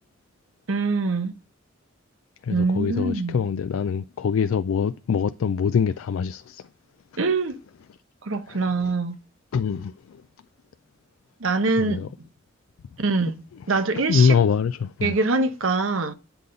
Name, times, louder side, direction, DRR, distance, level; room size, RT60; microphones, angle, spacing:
voice 1, 0.7-1.3 2.5-3.4 7.2-7.6 8.2-9.2 11.4-12.1 13.0-13.4 13.7-14.4 15.0-16.1, right 3 dB, 85° right, 0.9 m, -24 dB
voice 2, 2.4-6.6 9.5-9.9 11.8-12.1 13.7-13.8 14.1-15.1, left 6 dB, 90° left, 0.4 m, -23 dB
8.2 x 3.9 x 5.3 m
head